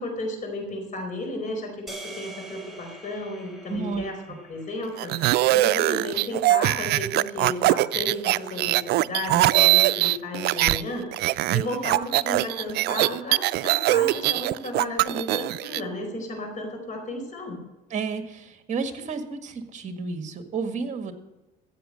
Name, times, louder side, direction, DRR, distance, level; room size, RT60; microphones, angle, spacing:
voice 1, 0.0-4.2 4.5-17.6, left 1 dB, 50° left, 4 dB, 4.7 m, -33 dB
sound 1, 1.9-6.2, right 2 dB, ahead, 4.3 m, -45 dB
voice 2, 3.7-4.1 17.9-21.1, right 5 dB, 45° right, 6 dB, 1.8 m, -31 dB
sound 2, 5.0-10.8 11.1-15.8, right 17 dB, 75° right, 0.4 m, -22 dB
14.5 x 8.4 x 6.5 m, 1.0 s
cardioid pair, 110°, 17 cm